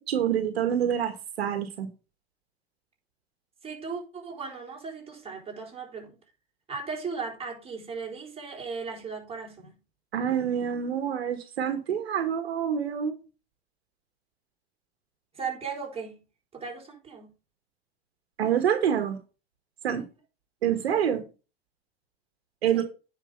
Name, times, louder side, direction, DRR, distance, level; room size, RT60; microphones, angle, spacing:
voice 1, 0.1-1.9 10.1-13.1 18.4-19.2 19.8-20.0 20.6-21.2 22.6-22.8, right 9 dB, 85° right, 1.6 m, -26 dB
voice 2, 3.6-6.2 6.7-9.8 15.3-16.2 16.5-17.3 22.7-22.8, right 5 dB, 20° right, 4.5 m, -37 dB
9.4 x 5.2 x 5.3 m
hypercardioid pair, 100°, 31 cm